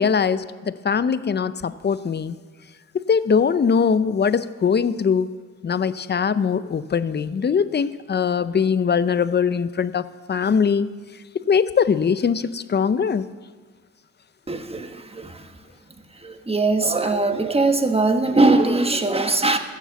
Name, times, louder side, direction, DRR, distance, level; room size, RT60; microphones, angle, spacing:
voice 1, 0.0-2.4 2.9-5.3 5.6-10.9 11.5-13.2, left 6 dB, 35° left, 15 dB, 0.6 m, -21 dB
voice 2, 14.5-15.5 16.2-19.6, right 3 dB, 20° right, 6 dB, 1.2 m, -21 dB
15.5 x 7.1 x 7.1 m, 1.5 s
cardioid pair, 80°, 32 cm